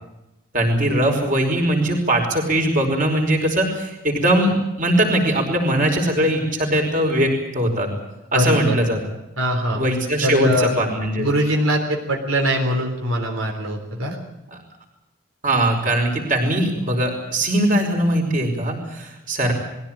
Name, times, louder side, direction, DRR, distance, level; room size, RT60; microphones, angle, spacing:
voice 1, 0.5-7.9 8.3-9.0 9.7-11.3 15.4-19.5, right 1 dB, 40° right, 2 dB, 5.1 m, -20 dB
voice 2, 8.3-8.8 9.4-9.8 10.2-10.7 11.2-14.2, equal, 80° right, 1 dB, 3.7 m, -22 dB
21.5 x 16.0 x 8.8 m, 0.92 s
head